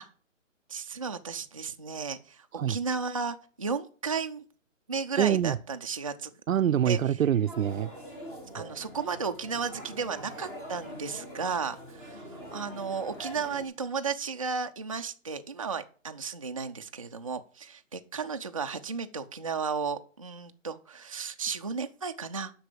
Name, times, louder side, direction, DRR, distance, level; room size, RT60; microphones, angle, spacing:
voice 1, 0.7-4.5 4.9-6.3 6.9-7.0 8.5-22.5, right 5 dB, 30° right, 0.3 m, -34 dB
voice 2, 5.2-5.6 6.5-7.9, right 9 dB, 90° right, 0.6 m, -25 dB
sound 1, 7.5-13.6, equal, 5° left, 0.7 m, -44 dB
8.0 x 6.0 x 6.6 m
hypercardioid pair, 150°, 39 cm